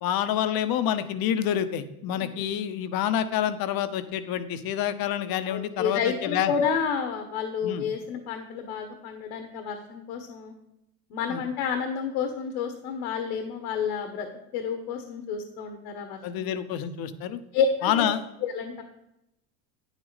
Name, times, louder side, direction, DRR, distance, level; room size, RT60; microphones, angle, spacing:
voice 1, 0.0-6.5 7.6-7.8 11.3-11.4 16.2-17.4 17.8-18.2, left 10 dB, 50° left, 12 dB, 1.0 m, -27 dB
voice 2, 5.5-10.5 11.1-14.3 14.5-16.5 17.5-17.9 18.4-18.8, left 6 dB, 70° left, 6 dB, 1.4 m, -30 dB
9.3 x 8.1 x 4.1 m, 0.86 s
supercardioid pair, 95°, 46 cm